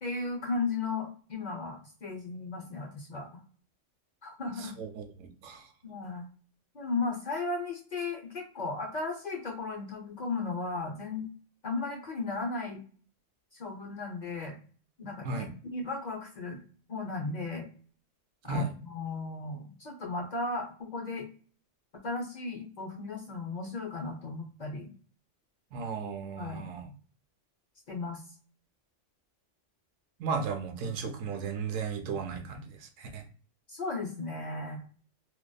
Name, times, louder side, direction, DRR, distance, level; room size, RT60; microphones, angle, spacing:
voice 1, 0.0-3.4 4.2-4.7 5.8-6.2 6.7-11.3 11.6-12.8 13.5-14.6 15.0-15.3 15.7-16.6 16.9-17.7 18.5-21.3 22.0-24.9 26.4-26.7 27.9-28.2 33.7-34.8, left 3 dB, 55° left, 0 dB, 0.5 m, -35 dB
voice 2, 4.6-5.7 15.2-15.5 18.4-18.7 25.7-26.9 30.2-33.2, right 4 dB, 90° right, 5 dB, 0.9 m, -35 dB
2.7 x 2.2 x 2.2 m, 0.42 s
omnidirectional pair, 1.3 m